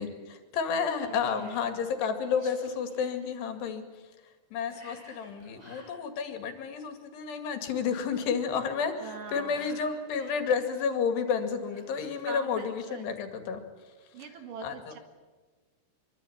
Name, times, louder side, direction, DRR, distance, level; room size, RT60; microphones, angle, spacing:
voice 1, 0.0-4.0 4.5-13.6 14.6-14.9, left 6 dB, 90° left, 7 dB, 4.3 m, -31 dB
Whispering, 1.0-1.7 2.3-3.1 4.7-5.9 9.0-10.8 11.7-12.9, equal, 10° right, 6.3 m, -54 dB
voice 2, 1.0-1.7 9.0-9.8 12.3-13.0 14.1-15.0, right 6 dB, 60° right, 6 dB, 3.3 m, -43 dB
24.5 x 24.0 x 8.8 m, 1.4 s
omnidirectional pair, 4.7 m